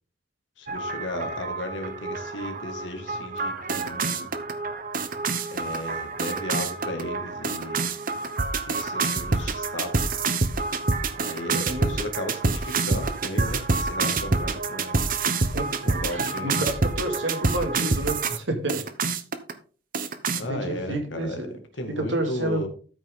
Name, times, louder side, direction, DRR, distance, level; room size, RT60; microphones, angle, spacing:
voice 1, 0.6-4.3 5.5-7.9 8.7-10.1 11.2-15.0 15.8-16.6 20.4-21.4 21.8-22.7, left 1 dB, 80° left, 2.1 m, -35 dB
sound 1, 0.7-18.4 18.7-19.5 19.9-20.4, right 3 dB, 50° right, 1.0 m, -27 dB
voice 2, 15.5-18.8 20.4-21.5 21.9-22.7, right 1 dB, 75° right, 2.3 m, -30 dB
13.5 x 5.8 x 3.8 m
head